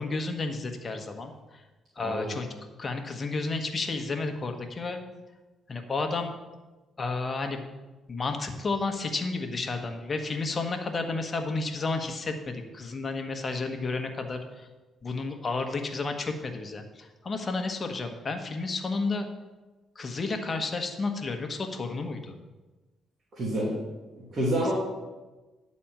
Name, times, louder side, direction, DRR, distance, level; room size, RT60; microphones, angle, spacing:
voice 1, 0.0-1.6 2.0-2.5 2.8-5.0 5.7-6.4 7.0-7.6 8.1-14.7 15.0-19.3 19.9-22.4 24.6-24.7, left 3 dB, 35° left, 5 dB, 1.3 m, -31 dB
voice 2, 23.3-23.7 24.1-24.7, right 1 dB, 45° right, -5 dB, 2.7 m, -28 dB
10.0 x 4.3 x 7.3 m, 1.2 s
cardioid pair, 90°, 0 cm